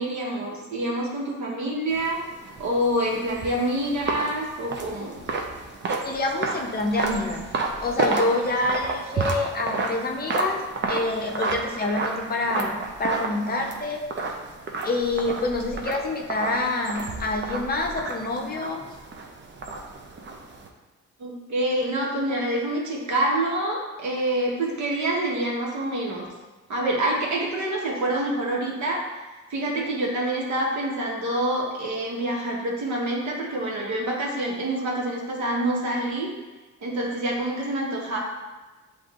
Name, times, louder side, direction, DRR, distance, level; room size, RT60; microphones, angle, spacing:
voice 1, 0.0-2.2 2.6-5.2 21.2-26.3 26.7-29.0 29.5-36.3 36.8-38.2, right 1 dB, 70° right, -3 dB, 1.2 m, -26 dB
sound 1, 1.9-20.7, right 3 dB, 35° right, 0.6 m, -31 dB
voice 2, 6.0-7.4 7.8-14.1 14.8-18.9, left 2 dB, 30° left, 1 dB, 0.6 m, -27 dB
7.6 x 2.6 x 2.4 m, 1.2 s
cardioid pair, 90°, 30 cm